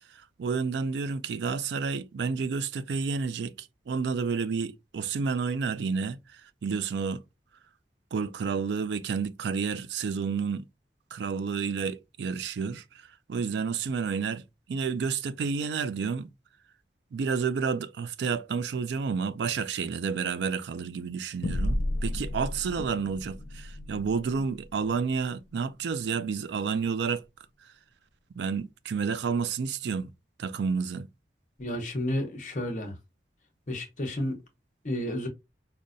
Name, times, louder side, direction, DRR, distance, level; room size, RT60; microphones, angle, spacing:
voice 1, 0.4-7.2 8.1-10.6 11.1-12.8 13.3-14.4 14.7-16.3 17.1-27.2 28.4-30.1 30.4-31.1, right 5 dB, 80° right, 0.3 m, -30 dB
sound 1, 21.4-26.2, left 1 dB, 80° left, 0.6 m, -34 dB
voice 2, 31.6-32.9 33.7-34.4 34.8-35.3, left 1 dB, 45° left, 0.8 m, -31 dB
5.2 x 2.1 x 2.5 m
head